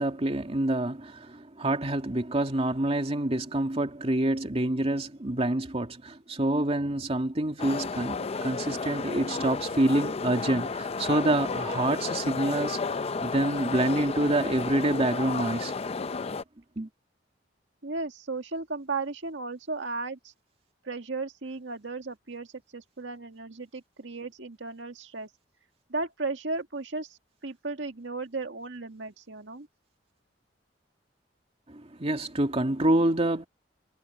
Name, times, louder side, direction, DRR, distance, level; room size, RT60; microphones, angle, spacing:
voice 1, 0.0-15.7 16.8-16.9 31.7-33.5, right 1 dB, 35° right, 2.4 m, -27 dB
sound 1, 7.6-16.4, left 4 dB, 35° left, 0.5 m, -32 dB
voice 2, 17.8-20.3 20.8-22.5 22.7-25.3 25.9-29.7, right 3 dB, 90° right, 1.9 m, -35 dB
head